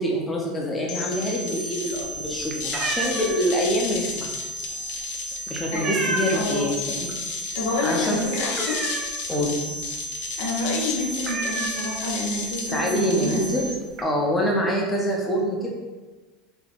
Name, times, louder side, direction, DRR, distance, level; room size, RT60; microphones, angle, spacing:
voice 1, 0.0-4.3 5.5-7.1 7.8-8.2 9.3-9.6 12.7-13.7 14.0-15.7, equal, 15° left, -2 dB, 0.6 m, -25 dB
sound 1, 0.9-13.7, left 2 dB, 70° left, 0.5 m, -32 dB
sound 2, 1.9-6.7 7.0-7.3 7.6-7.7 8.1-9.5 9.8-9.9 10.2-10.4 10.7-10.8 11.2-12.5 13.2-13.3 13.6-14.0, right 3 dB, 30° right, 0.4 m, -31 dB
voice 2, 6.3-6.7 7.5-8.8 10.4-13.7, left 2 dB, 85° left, -3 dB, 0.8 m, -28 dB
3.4 x 2.2 x 3.9 m, 1.3 s
supercardioid pair, 135°, 0 cm